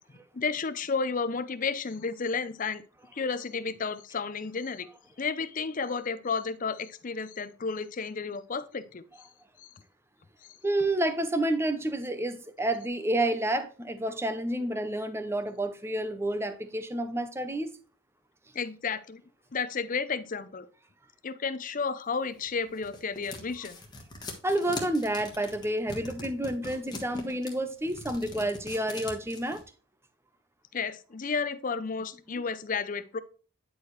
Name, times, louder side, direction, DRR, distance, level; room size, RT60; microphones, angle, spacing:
voice 1, 0.3-2.8 3.1-4.9 5.2-9.3 9.6-9.7 18.5-19.2 19.5-20.7 21.2-23.8 30.7-33.2, left 5 dB, 35° left, 0.5 m, -32 dB
voice 2, 10.6-17.7 24.4-29.6, right 1 dB, 10° right, 0.6 m, -29 dB
sound 1, 22.4-29.6, left 2 dB, 20° left, 1.3 m, -42 dB
10.0 x 4.7 x 3.1 m
head